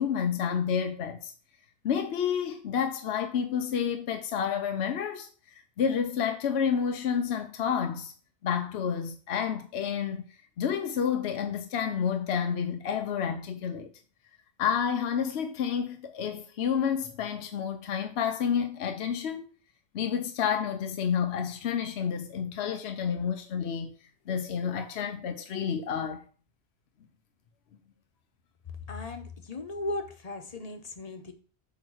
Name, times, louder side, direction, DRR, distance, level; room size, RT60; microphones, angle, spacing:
voice 1, 0.0-1.3 1.8-5.3 5.8-8.1 8.4-10.3 10.6-13.9 14.6-19.5 19.9-23.9 24.3-26.2, left 7 dB, 80° left, 1.0 m, -29 dB
voice 2, 28.8-31.3, left 2 dB, 40° left, 1.0 m, -37 dB
8.3 x 3.1 x 6.2 m
omnidirectional pair, 1.1 m